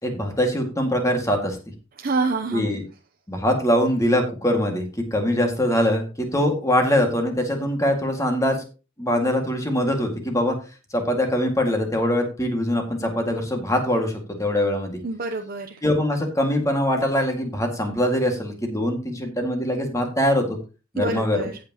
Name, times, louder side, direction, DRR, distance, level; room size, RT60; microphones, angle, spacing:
voice 1, 0.0-1.6 2.5-2.8 3.3-8.6 9.0-10.5 10.9-15.0 15.8-20.6 20.9-21.5, left 1 dB, 15° left, 3 dB, 2.1 m, -23 dB
voice 2, 2.0-2.7 15.0-15.8 21.0-21.6, right 3 dB, 50° right, 4 dB, 0.7 m, -27 dB
16.5 x 6.0 x 3.0 m, 0.32 s
head